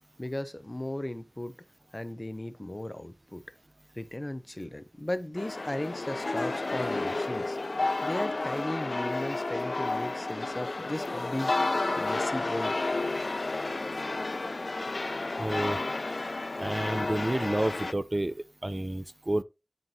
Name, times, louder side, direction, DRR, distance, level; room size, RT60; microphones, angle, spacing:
voice 1, 0.2-1.6 1.9-3.4 3.9-7.6 8.0-12.8, left 1 dB, 30° left, 0.7 m, -36 dB
sound 1, 5.4-17.9, left 2 dB, 65° left, 0.4 m, -31 dB
voice 2, 15.4-15.8 16.6-19.4, right 1 dB, 35° right, 0.6 m, -30 dB
11.0 x 4.6 x 2.8 m
wide cardioid pair, 50°, 0 cm